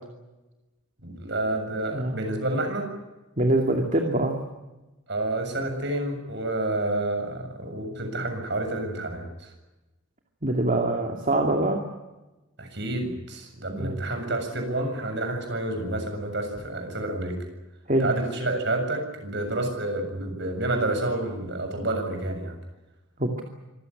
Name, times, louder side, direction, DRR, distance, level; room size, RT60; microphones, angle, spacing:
voice 1, 1.0-2.9 5.1-9.5 12.6-17.4 18.0-22.5, right 2 dB, 55° right, 5 dB, 7.2 m, -29 dB
voice 2, 3.4-4.3 10.4-11.8 13.7-14.0 17.9-18.1 23.2-23.4, right 1 dB, 40° right, 2 dB, 2.5 m, -24 dB
26.0 x 16.0 x 10.0 m, 1.1 s
head